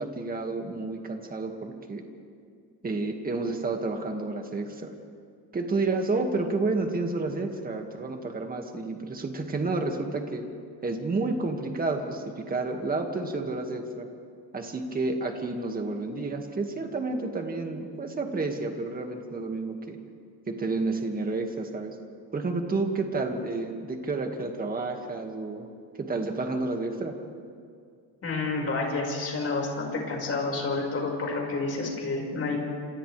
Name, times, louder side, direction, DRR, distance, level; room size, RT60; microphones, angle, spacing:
voice 1, 0.0-2.0 2.8-4.9 5.5-10.4 10.8-14.1 14.5-20.0 20.5-22.0 22.3-25.7 26.0-27.1, right 3 dB, 20° right, 3 dB, 2.0 m, -30 dB
voice 2, 28.2-32.6, left 3 dB, 35° left, -1 dB, 5.3 m, -29 dB
29.5 x 27.0 x 3.4 m, 2.3 s
cardioid pair, 150°, 40 cm